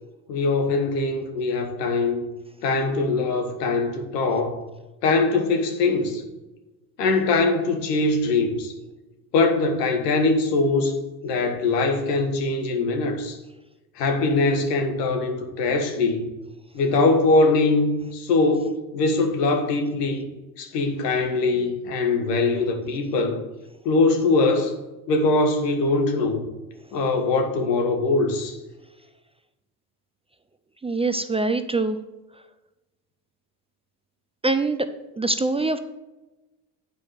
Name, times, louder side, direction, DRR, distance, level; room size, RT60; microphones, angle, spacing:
voice 1, 0.3-2.2 2.6-4.6 5.0-6.2 7.0-8.7 9.3-11.0 11.2-13.4 14.0-16.3 16.7-20.3 20.6-23.4 23.8-24.7 25.1-26.4 26.9-28.6, left 3 dB, 90° left, 4 dB, 1.5 m, -22 dB
voice 2, 30.8-32.0 34.4-34.9 35.2-35.8, right 3 dB, 15° right, 10 dB, 0.4 m, -23 dB
8.3 x 4.8 x 6.4 m, 1.0 s
hypercardioid pair, 70°, 47 cm